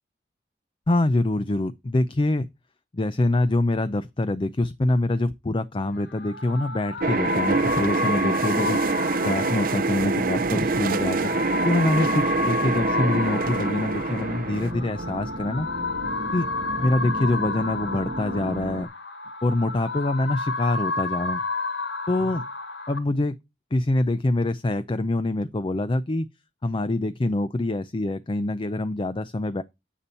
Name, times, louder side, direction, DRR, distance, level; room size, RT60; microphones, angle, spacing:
voice 1, 0.9-2.5 2.9-8.8 9.2-11.3 11.6-15.7 16.3-16.5 16.8-18.9 19.4-21.4 22.1-22.4 22.9-23.4 23.7-26.3 26.6-29.6, left 2 dB, 30° left, 0.5 m, -25 dB
sound 1, 6.0-23.0, left 3 dB, 85° left, 1.4 m, -31 dB
sound 2, 7.0-14.7, right 4 dB, 55° right, 0.6 m, -25 dB
sound 3, 10.0-18.9, right 1 dB, 85° right, 1.5 m, -35 dB
10.0 x 6.9 x 4.3 m
head